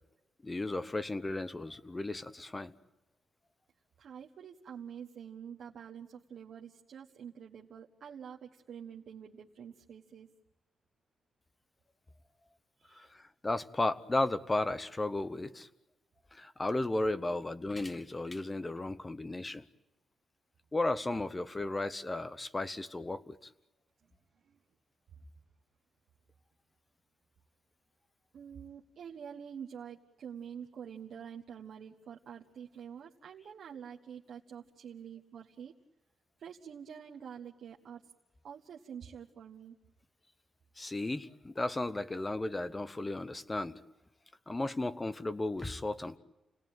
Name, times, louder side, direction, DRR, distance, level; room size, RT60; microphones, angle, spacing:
voice 1, 0.4-2.7 12.9-15.7 16.3-19.7 20.7-23.5 40.8-43.8 44.5-46.2, left 2 dB, 15° left, 13 dB, 0.9 m, -34 dB
voice 2, 4.0-10.3 12.8-13.1 24.4-24.6 28.3-35.7 36.4-38.1 38.4-39.8, right 8 dB, 65° right, -1 dB, 1.3 m, -47 dB
29.5 x 19.0 x 9.2 m, 1.0 s
wide cardioid pair, 155°, 0 cm